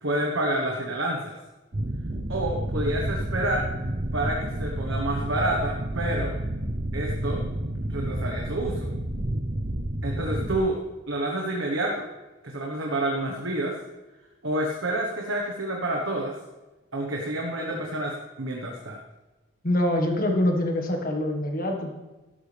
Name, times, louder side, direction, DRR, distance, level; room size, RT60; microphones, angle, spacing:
voice 1, 0.0-1.3 2.3-3.7 4.1-6.3 6.9-7.4 7.9-8.8 10.0-10.8 11.1-12.1 12.4-13.8 14.4-16.3 16.9-19.0, right 1 dB, 70° right, 0 dB, 1.4 m, -28 dB
sound 1, 1.7-10.6, right 1 dB, 40° right, 0.8 m, -30 dB
voice 2, 19.6-21.9, left 1 dB, 45° left, 2 dB, 1.8 m, -25 dB
13.0 x 11.5 x 3.5 m, 1.1 s
head